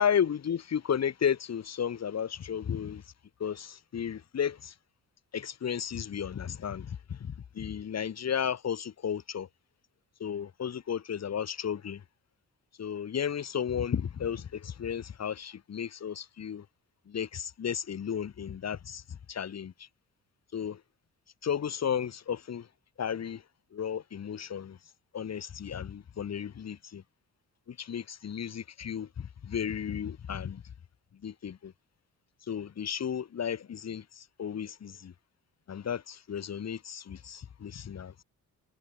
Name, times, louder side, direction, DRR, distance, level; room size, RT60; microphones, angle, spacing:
voice 1, 0.0-3.0 3.4-4.7 5.3-9.5 10.2-12.0 12.8-16.7 17.1-19.9 20.5-20.8 21.4-22.7 23.0-23.4 23.7-24.8 25.1-27.0 27.7-30.6 31.2-31.7 32.5-35.1 35.7-38.1, left 8 dB, 50° left, 7.7 m, -33 dB
wide cardioid pair, 180°, 33 cm